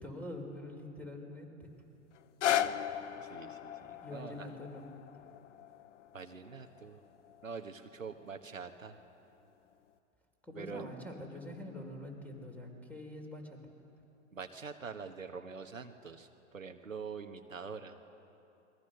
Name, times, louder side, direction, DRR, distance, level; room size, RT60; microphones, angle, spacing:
voice 1, 0.0-1.7 4.0-4.9 10.4-13.6, left 1 dB, 5° left, 2 dB, 4.5 m, -45 dB
sound 1, 2.1-8.2 8.9-9.0, left 10 dB, 65° left, 1.0 m, -37 dB
voice 2, 3.2-4.5 6.1-7.0 7.4-9.0 10.5-10.9 14.3-18.0, right 5 dB, 90° right, 6 dB, 1.4 m, -45 dB
28.5 x 22.5 x 6.6 m, 2.8 s
figure-of-eight pair, 95°, 38 cm